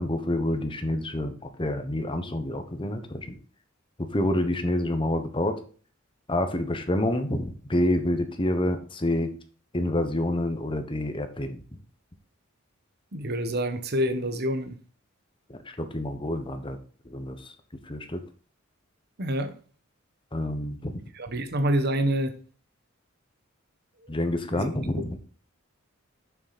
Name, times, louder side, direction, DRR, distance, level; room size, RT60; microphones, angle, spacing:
voice 1, 0.0-3.4 4.0-5.6 6.3-9.3 9.7-11.6 15.5-16.8 17.0-17.5 17.8-18.2 20.3-21.0 24.1-25.2, left 1 dB, 25° left, 7 dB, 1.1 m, -28 dB
voice 2, 13.1-14.8 19.2-19.5 21.1-22.3 24.5-24.7, equal, 50° right, 8 dB, 1.1 m, -27 dB
7.1 x 6.4 x 4.2 m, 0.40 s
head